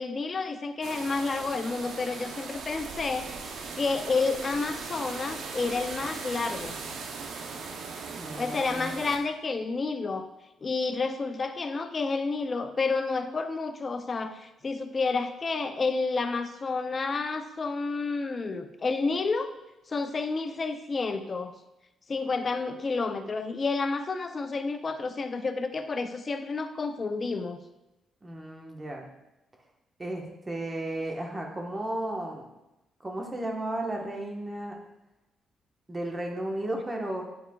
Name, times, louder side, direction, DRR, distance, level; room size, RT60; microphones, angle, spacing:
voice 1, 0.0-3.5 3.8-6.8 8.4-10.3 10.6-19.5 19.9-21.5 22.1-27.6, left 4 dB, 35° left, 8 dB, 0.5 m, -30 dB
sound 1, 0.8-9.2, right 4 dB, 70° right, 0.7 m, -39 dB
voice 2, 8.2-8.9 28.2-29.1 30.0-32.5 33.0-34.8 35.9-37.2, right 1 dB, 20° right, 1 dB, 1.2 m, -34 dB
9.3 x 4.5 x 2.3 m, 0.95 s
cardioid pair, 90°, 0 cm